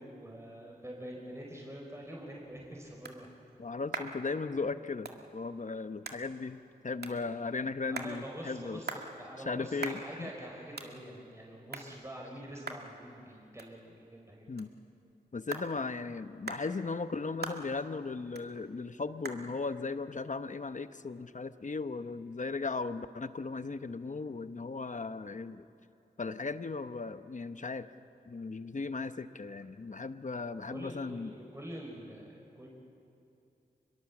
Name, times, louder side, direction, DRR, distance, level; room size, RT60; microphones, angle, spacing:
voice 1, 0.0-3.3 7.9-14.4 30.7-32.7, equal, 15° right, -2 dB, 5.0 m, -45 dB
sound 1, 2.1-21.5, right 3 dB, 70° right, 2.0 m, -47 dB
voice 2, 3.6-8.8 9.4-10.3 14.5-14.7 15.3-25.7 26.2-27.9 28.3-31.3, left 4 dB, 45° left, 11 dB, 0.9 m, -37 dB
24.0 x 22.0 x 7.3 m, 2.6 s
cardioid pair, 45°, 17 cm